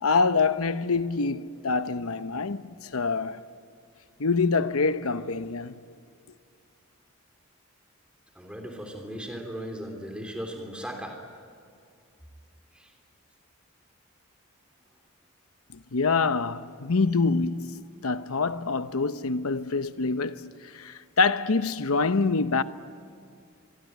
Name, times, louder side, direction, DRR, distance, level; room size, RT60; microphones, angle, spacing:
voice 1, 0.0-3.4 4.2-5.8 15.7-22.6, left 4 dB, 80° left, 0.9 m, -26 dB
voice 2, 8.3-11.2 12.7-12.9, equal, 5° right, 3.3 m, -37 dB
25.0 x 23.0 x 9.3 m
head